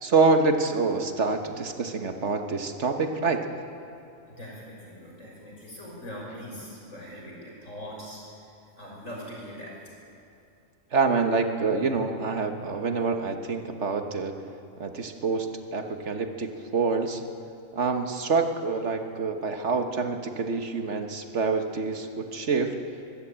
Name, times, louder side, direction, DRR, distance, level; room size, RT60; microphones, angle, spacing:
voice 1, 0.0-3.5 10.9-14.3 14.8-17.2 17.7-22.8, right 4 dB, 65° right, 6 dB, 1.6 m, -26 dB
voice 2, 4.3-8.2 8.8-9.7, equal, 75° left, -3 dB, 6.5 m, -41 dB
23.5 x 15.0 x 8.8 m, 2.6 s
omnidirectional pair, 1.3 m